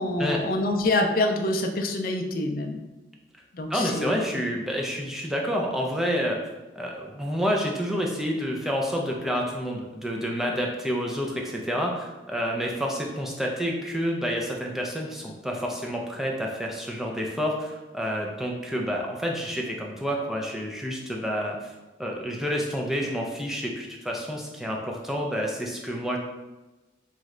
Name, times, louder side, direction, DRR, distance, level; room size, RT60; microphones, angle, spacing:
voice 1, 0.0-2.8 3.5-4.2, left 2 dB, 50° left, 4 dB, 0.4 m, -26 dB
voice 2, 3.7-6.4 6.8-21.7 22.0-26.2, equal, ahead, -1 dB, 0.5 m, -29 dB
3.2 x 3.1 x 3.7 m, 1.1 s
head